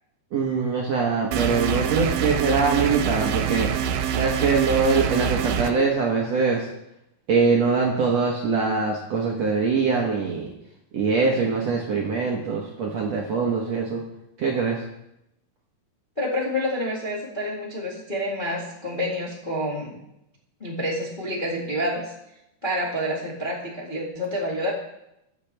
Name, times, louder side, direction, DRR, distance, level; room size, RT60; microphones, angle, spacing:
voice 1, 0.3-3.7 4.2-6.7 7.3-10.5 10.9-14.0 14.4-14.8, right 4 dB, 60° right, -2 dB, 1.8 m, -23 dB
sound 1, 1.3-5.7, right 8 dB, 85° right, 2.8 m, -25 dB
voice 2, 16.2-20.0 20.6-22.1 22.6-24.7, equal, 25° left, -4 dB, 1.1 m, -28 dB
22.5 x 7.5 x 3.4 m, 0.85 s
omnidirectional pair, 4.5 m